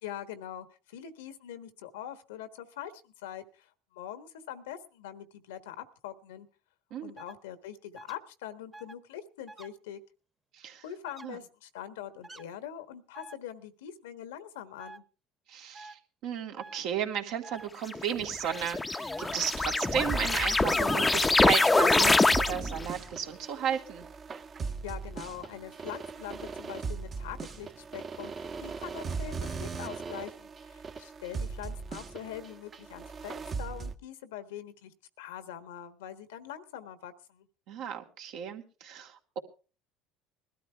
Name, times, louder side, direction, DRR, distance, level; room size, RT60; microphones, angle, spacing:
voice 1, 0.0-6.5 7.0-10.0 10.8-15.0 24.8-37.5, left 10 dB, 90° left, 1.3 m, -43 dB
sound 1, 7.2-7.3 7.9-8.2 8.7-8.9 9.5-9.7 11.1-11.3 12.2-12.4 13.1-13.4 14.8-15.0 15.7-15.9 16.6-16.8 17.4-17.7 18.5-18.7 19.1-19.3, right 2 dB, 15° right, 1.2 m, -47 dB
voice 2, 15.5-24.1 37.7-39.4, right 8 dB, 70° right, 2.5 m, -34 dB
sound 2, 17.9-22.9, left 3 dB, 15° left, 0.7 m, -25 dB
sound 3, 19.2-33.9, right 4 dB, 35° right, 1.2 m, -39 dB
20.5 x 13.0 x 3.4 m
supercardioid pair, 85°, 0 cm